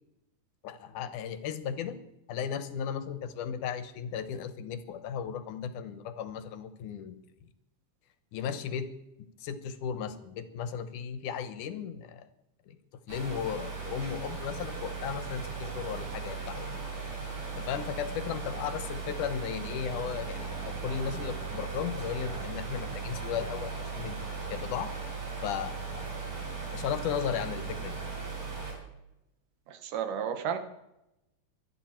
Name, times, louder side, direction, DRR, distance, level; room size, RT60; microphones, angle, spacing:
voice 1, 0.6-2.0 2.3-7.2 8.3-8.9 9.4-12.3 12.7-12.8 13.1-16.9 17.6-24.9 25.4-26.1 26.7-28.0, left 8 dB, 80° left, 11 dB, 2.5 m, -35 dB
sound 1, 13.1-28.7, right 4 dB, 65° right, 6.4 m, -37 dB
voice 2, 29.7-30.6, right 8 dB, 85° right, 8 dB, 2.9 m, -32 dB
23.5 x 9.8 x 4.4 m, 0.89 s
omnidirectional pair, 3.6 m